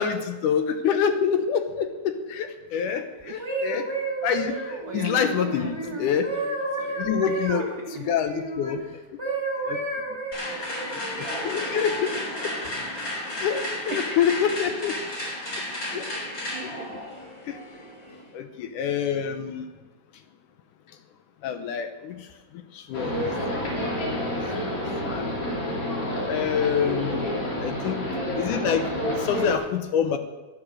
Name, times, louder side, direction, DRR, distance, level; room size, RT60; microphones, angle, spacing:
voice 1, 0.0-3.8 4.2-6.3 7.0-7.6 7.9-8.8 9.6-9.8 11.1-12.1 13.4-14.9 15.9-16.0 16.6-17.0 17.5-17.6 18.3-19.6 21.4-22.2 22.8-23.3 24.2-24.4 25.1-25.3 26.3-27.3 27.6-28.1 28.4-30.2, left 7 dB, 75° left, 8 dB, 2.3 m, -26 dB
sound 1, 3.2-8.8 9.2-12.1 12.7-13.0, right 2 dB, 10° right, 1.5 m, -32 dB
voice 2, 3.2-3.9 4.4-6.0 6.3-8.1 13.4-13.6 13.9-14.6 15.3-17.0 18.1-18.2, right 5 dB, 75° right, 3 dB, 1.2 m, -42 dB
sound 2, 10.3-18.3, left 1 dB, 25° left, 3.8 m, -33 dB
sound 3, 22.9-29.6, left 1 dB, 45° left, 3.7 m, -29 dB
11.5 x 11.5 x 6.3 m, 1.2 s
omnidirectional pair, 3.8 m